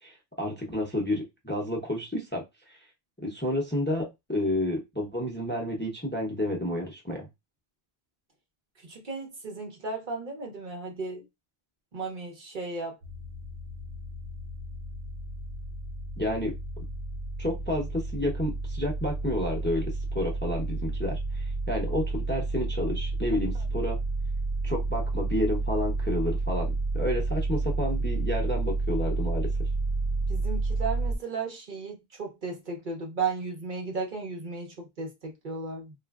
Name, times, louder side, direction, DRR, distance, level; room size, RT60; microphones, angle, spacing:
voice 1, 0.0-2.8 3.2-7.3 16.2-16.8 17.4-24.0 24.6-29.5, left 1 dB, 10° left, 0.6 m, -30 dB
voice 2, 8.8-11.3 11.9-13.0 30.3-35.9, right 4 dB, 55° right, 0.9 m, -35 dB
sound 1, 13.0-31.2, right 2 dB, 80° right, 1.0 m, -30 dB
3.0 x 2.4 x 2.3 m
omnidirectional pair, 1.0 m